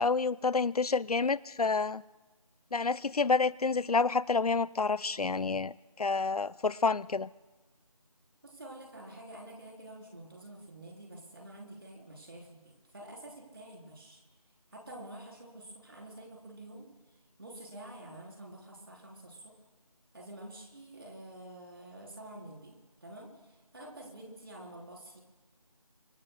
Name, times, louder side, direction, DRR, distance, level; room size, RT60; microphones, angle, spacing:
voice 1, 0.0-2.0 2.7-7.3, left 4 dB, 90° left, 20 dB, 0.5 m, -29 dB
voice 2, 8.4-14.2 14.7-16.9 17.4-19.5 20.1-22.7 23.0-25.2, right 1 dB, 40° right, -1 dB, 3.8 m, -48 dB
25.0 x 22.5 x 2.2 m, 1.2 s
figure-of-eight pair, 170°, 19 cm